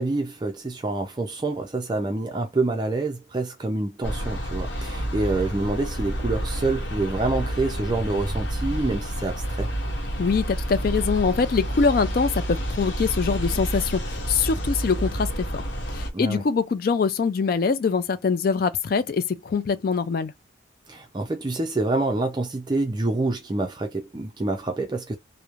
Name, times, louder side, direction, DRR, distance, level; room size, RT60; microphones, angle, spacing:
voice 1, 0.0-9.7 16.1-16.4 20.9-25.2, right 2 dB, 25° right, 0.4 m, -27 dB
sound 1, 4.0-16.1, equal, 70° left, 0.8 m, -29 dB
voice 2, 10.2-15.6 15.9-20.3, left 5 dB, 50° left, 0.3 m, -24 dB
3.0 x 2.0 x 2.4 m
head